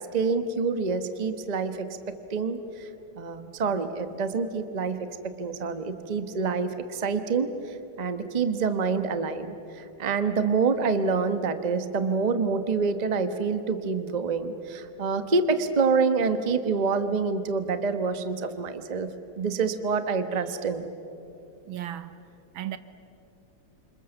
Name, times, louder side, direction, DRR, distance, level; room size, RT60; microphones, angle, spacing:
voice 1, 0.1-2.9 3.1-19.1 19.4-20.9, right 4 dB, 25° right, 0.9 m, -27 dB
voice 2, 21.6-22.2 22.5-22.8, right 12 dB, 75° right, 1.7 m, -35 dB
29.0 x 26.0 x 7.0 m
omnidirectional pair, 2.3 m